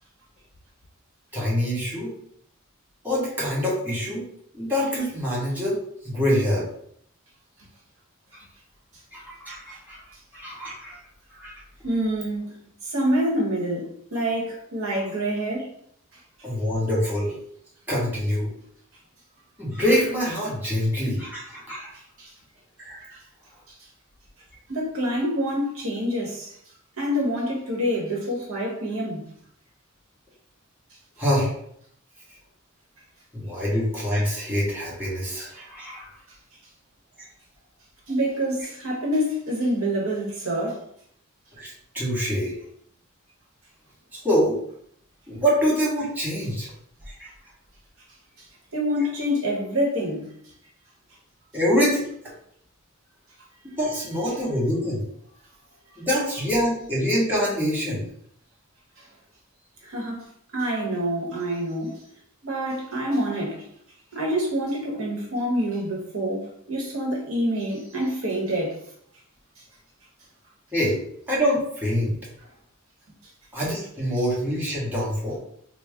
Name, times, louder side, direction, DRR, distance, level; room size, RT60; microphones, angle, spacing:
voice 1, 1.3-2.1 3.0-4.2 4.5-5.8 6.0-6.7 9.1-10.0 10.3-11.0 11.4-11.5 16.4-17.3 17.9-18.5 19.6-21.9 22.9-23.2 31.2-31.5 33.3-36.1 41.6-42.5 44.1-44.6 45.3-46.7 47.1-47.3 51.5-52.1 53.8-55.1 56.0-58.0 70.7-71.0 71.3-72.1 73.5-75.4, equal, 10° right, 1.4 m, -25 dB
voice 2, 11.8-12.5 12.8-15.7 22.2-22.3 24.7-26.5 27.0-29.2 38.1-40.8 48.7-50.2 59.8-60.2 60.5-62.0 62.4-63.6 64.1-68.8, equal, 70° right, 1.2 m, -26 dB
4.1 x 2.0 x 3.6 m
head